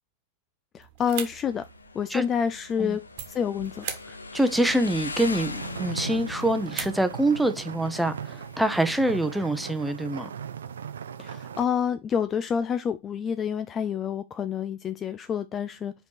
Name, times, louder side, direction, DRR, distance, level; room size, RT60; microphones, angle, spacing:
voice 1, 0.7-1.7 1.9-3.9 11.2-15.9, left 7 dB, 25° left, 0.4 m, -28 dB
sound 1, 0.7-7.5, right 9 dB, 50° right, 1.3 m, -42 dB
Motorcycle, 1.5-9.7, left 3 dB, 80° left, 0.7 m, -40 dB
voice 2, 4.3-10.3, right 1 dB, ahead, 0.8 m, -25 dB
sound 2, 5.5-11.7, right 8 dB, 65° right, 0.5 m, -39 dB
5.2 x 4.6 x 4.9 m
figure-of-eight pair, 90°, 0 cm